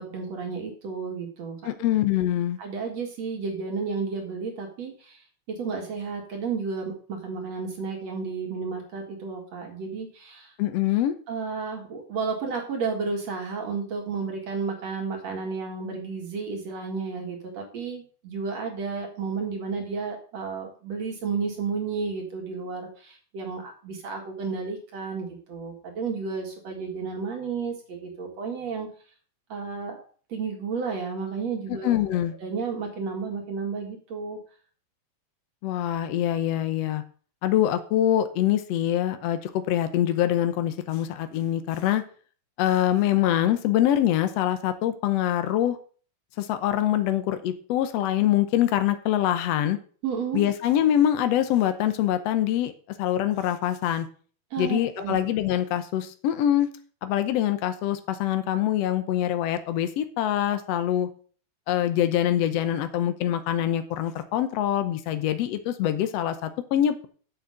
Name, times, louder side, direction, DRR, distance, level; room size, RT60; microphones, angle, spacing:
voice 1, 0.0-1.6 2.6-5.2 5.5-10.5 11.3-28.9 29.5-30.0 30.3-31.9 32.4-34.4 50.0-50.4 54.5-55.2, right 5 dB, 50° right, 1 dB, 2.9 m, -32 dB
voice 2, 1.6-2.6 10.6-11.1 31.8-32.3 35.6-37.0 37.4-42.0 42.6-45.8 46.4-49.8 50.3-52.7 53.0-54.1 54.6-56.7 57.0-61.1 61.7-67.1, left 11 dB, 85° left, 10 dB, 1.4 m, -24 dB
7.2 x 6.5 x 7.8 m, 0.42 s
omnidirectional pair, 4.2 m